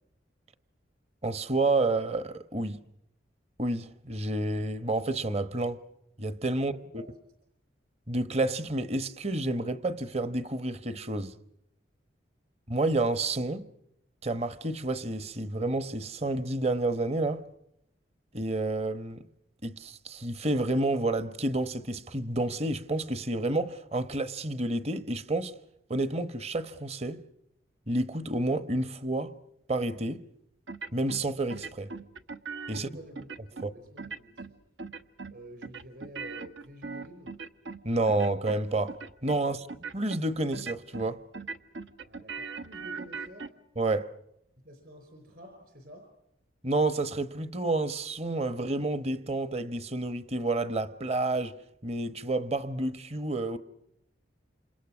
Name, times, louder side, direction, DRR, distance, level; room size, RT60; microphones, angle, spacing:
voice 1, 1.2-2.8 3.6-5.8 6.2-7.0 8.1-11.3 12.7-13.7 14.2-17.4 18.3-19.2 19.6-25.5 25.9-27.2 27.9-29.3 29.7-30.2 30.9-31.9 32.7-32.9 33.6-33.7 37.8-39.0 39.2-39.7 39.9-41.2 43.8-44.1 46.6-51.6 51.8-53.6, right 2 dB, 35° right, 1.0 m, -29 dB
voice 2, 6.5-7.1 32.7-34.6 35.3-37.3 42.0-43.5 44.6-46.1, equal, 55° right, 5.6 m, -49 dB
sound 1, 30.7-31.2 31.5-32.8 33.2-33.7 34.0-34.5 34.8-35.3 35.6-37.8 38.1-38.6 38.9-39.4 39.7-40.2 40.5-41.1 41.3-43.5, right 4 dB, 80° right, 1.1 m, -39 dB
28.5 x 27.0 x 6.2 m
head